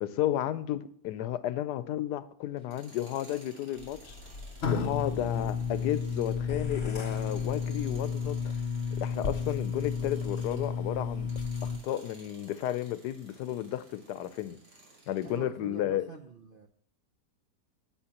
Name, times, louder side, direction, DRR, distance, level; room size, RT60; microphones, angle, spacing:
voice 1, 0.0-4.2 4.7-8.5 9.0-11.3 11.6-14.6 15.1-16.1, left 12 dB, 85° left, 1.2 m, -33 dB
Tools, 2.6-10.8 11.2-15.4, right 2 dB, 85° right, 3.1 m, -56 dB
sound 1, 3.8-11.8, left 6 dB, 50° left, 0.9 m, -32 dB
sound 2, 6.5-8.3, left 3 dB, 30° left, 0.6 m, -45 dB
voice 2, 15.2-16.7, right 5 dB, 55° right, 0.6 m, -46 dB
10.0 x 7.3 x 2.9 m
omnidirectional pair, 1.7 m